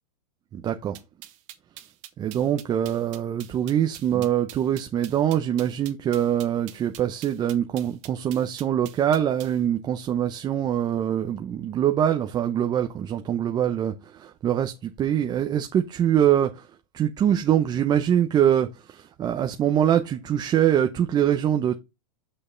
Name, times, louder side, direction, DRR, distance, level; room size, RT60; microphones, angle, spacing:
voice 1, 0.6-1.0 2.2-16.7 16.9-21.8, right 10 dB, 20° right, 0.7 m, -24 dB
sound 1, 0.9-9.6, right 14 dB, 55° right, 1.5 m, -44 dB
6.4 x 5.6 x 3.8 m
supercardioid pair, 140°, 19 cm